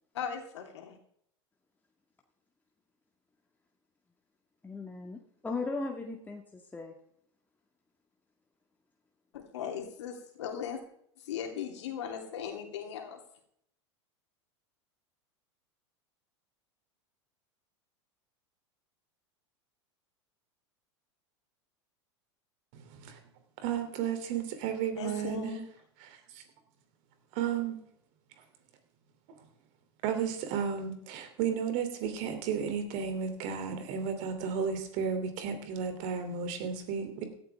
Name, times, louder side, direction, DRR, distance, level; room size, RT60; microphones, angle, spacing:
voice 1, 0.1-1.0 9.3-10.8 11.3-13.2 25.0-25.6, left 7 dB, 70° left, 3 dB, 3.1 m, -38 dB
voice 2, 4.6-6.9, left 3 dB, 10° left, 1 dB, 1.8 m, -37 dB
voice 3, 22.7-23.2 23.6-25.5 26.1-26.4 27.3-27.8 30.0-37.2, right 7 dB, 55° right, 7 dB, 3.1 m, -33 dB
16.5 x 13.0 x 3.6 m, 0.68 s
hypercardioid pair, 90°, 15 cm